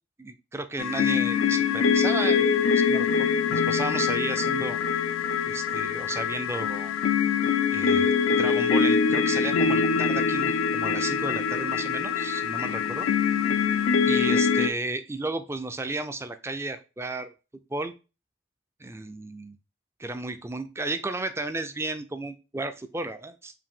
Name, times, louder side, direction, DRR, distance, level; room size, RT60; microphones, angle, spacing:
voice 1, 0.2-4.8 5.5-6.9 7.7-13.1 14.1-17.3 17.7-17.9 18.8-19.6 20.0-23.5, right 2 dB, 15° right, 9 dB, 0.3 m, -33 dB
sound 1, 0.8-14.7, left 6 dB, 85° left, 0.5 m, -24 dB
4.7 x 2.6 x 3.5 m, 0.31 s
head